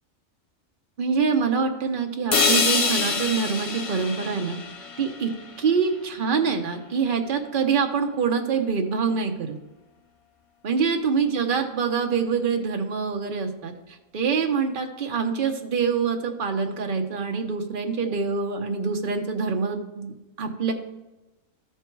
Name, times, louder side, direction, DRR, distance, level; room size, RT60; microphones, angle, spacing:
voice 1, 1.0-4.6 5.0-5.3 5.6-9.6 10.6-13.7 14.1-20.1 20.4-20.7, right 5 dB, 45° right, 4 dB, 1.0 m, -25 dB
sound 1, 2.3-6.3, left 4 dB, 35° left, 0.6 m, -26 dB
13.0 x 4.6 x 4.5 m, 1.0 s
omnidirectional pair, 1.4 m